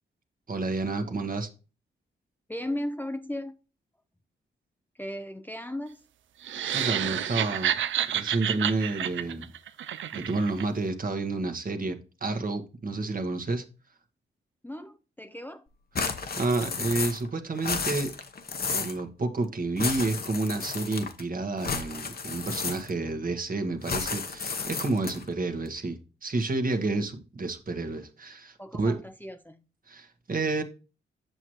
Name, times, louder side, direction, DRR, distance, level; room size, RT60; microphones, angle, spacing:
voice 1, 0.5-1.5 6.7-7.7 8.1-9.5 10.1-13.6 16.4-18.1 18.7-29.0 29.9-30.6, right 3 dB, 45° right, 1.4 m, -30 dB
voice 2, 2.5-3.6 4.9-6.0 14.6-15.6 28.6-29.6, left 1 dB, 10° left, 0.6 m, -36 dB
sound 1, 6.4-10.7, right 10 dB, 70° right, 0.5 m, -29 dB
sound 2, 15.9-17.3 17.5-19.0 19.8-21.2 21.6-23.1 23.8-25.3, left 5 dB, 50° left, 1.0 m, -32 dB
7.9 x 6.2 x 3.1 m
supercardioid pair, 45°, 21 cm